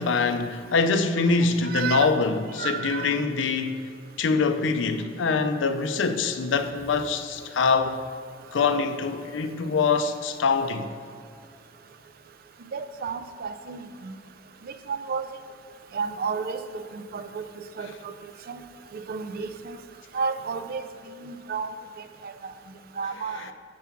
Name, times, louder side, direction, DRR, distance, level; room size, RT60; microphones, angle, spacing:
voice 1, 0.0-3.8 4.2-8.0 8.5-10.9 23.4-23.5, left 4 dB, 80° left, 0.5 m, -24 dB
voice 2, 1.6-2.1 2.6-3.1 12.7-14.2 14.7-15.3 15.9-18.1 18.5-18.6 18.9-19.8 20.1-20.9 21.2-21.7 22.0-22.5 23.0-23.5, right 5 dB, 50° right, 0.4 m, -32 dB
7.0 x 4.6 x 5.9 m
head